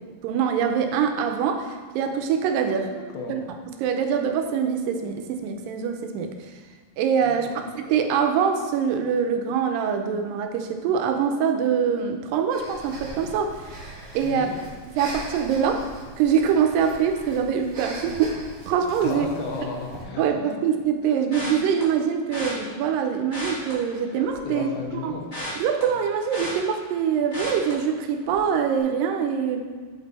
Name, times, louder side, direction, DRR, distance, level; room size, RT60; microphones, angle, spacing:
voice 1, 0.2-2.9 3.3-3.4 3.8-6.3 7.0-13.6 14.1-14.5 15.0-15.9 16.2-18.4 18.7-19.3 20.2-24.7 25.0-25.1 25.6-29.7, right 7 dB, 85° right, 5 dB, 2.3 m, -24 dB
voice 2, 2.9-3.3 7.2-7.6 14.2-14.5 19.0-20.2 24.4-25.3, left 4 dB, 75° left, 0 dB, 2.2 m, -34 dB
Breathing, 12.5-20.0, right 1 dB, 55° right, 1.1 m, -40 dB
sound 1, 21.3-21.8 22.3-22.5 23.2-24.5 24.8-27.0 27.3-27.7 28.2-28.5 28.7-28.8, left 1 dB, 35° left, 0.5 m, -35 dB
6.6 x 5.3 x 4.0 m, 1.5 s
omnidirectional pair, 3.9 m